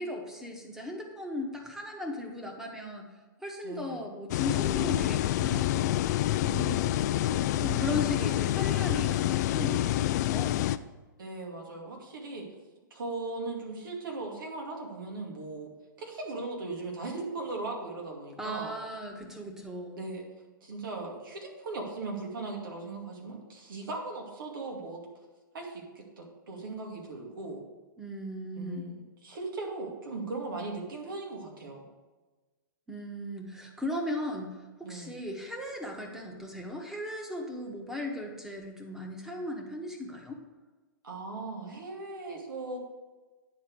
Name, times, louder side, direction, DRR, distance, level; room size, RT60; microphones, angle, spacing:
voice 1, 0.0-3.1 3.4-5.9 6.4-10.7 18.4-20.0 28.0-28.9 32.9-40.4, left 1 dB, 5° right, 1 dB, 1.4 m, -37 dB
voice 2, 3.6-4.1 7.3-7.4 11.2-12.5 12.9-15.7 16.0-18.8 20.0-20.2 20.6-25.0 25.5-27.6 28.6-31.8 34.8-35.2 41.0-42.8, right 3 dB, 80° right, 0 dB, 2.3 m, -38 dB
sound 1, 4.3-10.8, left 14 dB, 50° left, 0.3 m, -27 dB
9.7 x 4.3 x 6.2 m, 1.2 s
hypercardioid pair, 130°, 11 cm